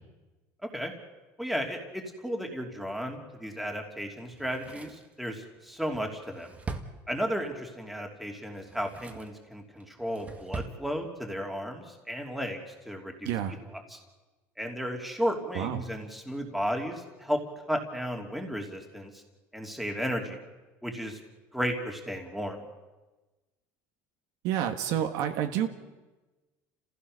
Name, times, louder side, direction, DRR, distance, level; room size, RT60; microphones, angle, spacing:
voice 1, 0.6-0.9 1.4-6.5 7.1-12.6 12.8-13.3 13.7-14.0 14.6-17.4 17.7-19.2 19.5-20.4 20.8-21.2 21.5-22.6, equal, ahead, 2 dB, 3.0 m, -34 dB
Drawer open or close, 4.3-7.6 8.5-9.4 9.8-10.8 11.1-11.2, right 4 dB, 20° right, 1.7 m, -42 dB
voice 2, 13.2-13.6 15.5-15.8 24.4-25.7, right 10 dB, 65° right, 6 dB, 1.9 m, -29 dB
30.0 x 16.0 x 6.7 m, 1.2 s
cardioid pair, 140°, 7 cm